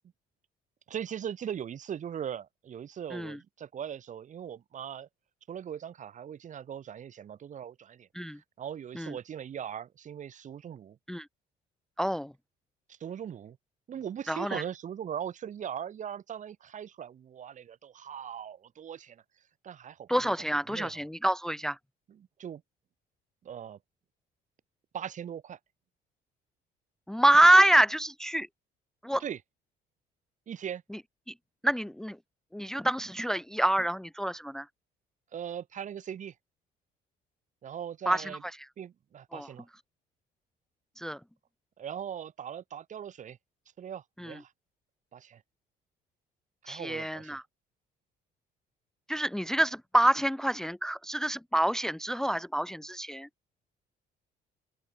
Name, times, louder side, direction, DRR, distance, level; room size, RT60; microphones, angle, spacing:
voice 1, 0.9-5.1 5.5-8.1 8.6-11.0 12.9-13.6 13.9-19.2 19.6-20.3 20.7-21.0 22.1-22.6 23.4-23.8 24.9-25.6 29.2-29.4 30.5-30.8 35.3-36.3 37.6-38.4 38.8-39.7 41.8-43.4 43.8-44.5 45.1-45.4 46.6-47.4, right 9 dB, 45° right, 2.5 m, -40 dB
voice 2, 12.0-12.3 14.3-14.6 20.1-21.8 27.1-28.5 29.0-29.2 31.6-32.2 32.5-34.7 38.1-38.3 39.3-39.5 41.0-41.2 44.2-44.4 46.7-47.4 49.1-53.3, right 1 dB, 5° left, 0.7 m, -26 dB
open air
cardioid pair, 110°, 17 cm